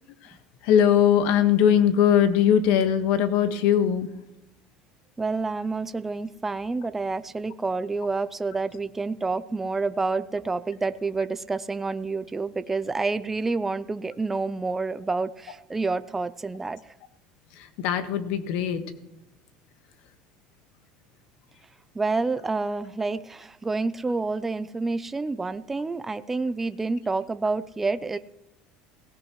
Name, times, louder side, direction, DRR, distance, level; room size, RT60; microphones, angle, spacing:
voice 1, 0.6-4.1 17.5-18.8, left 9 dB, 65° left, 8 dB, 1.5 m, -21 dB
voice 2, 5.2-16.8 21.9-28.2, right 3 dB, 10° right, 13 dB, 0.5 m, -28 dB
18.0 x 17.0 x 3.1 m, 0.87 s
cardioid pair, 150°, 2 cm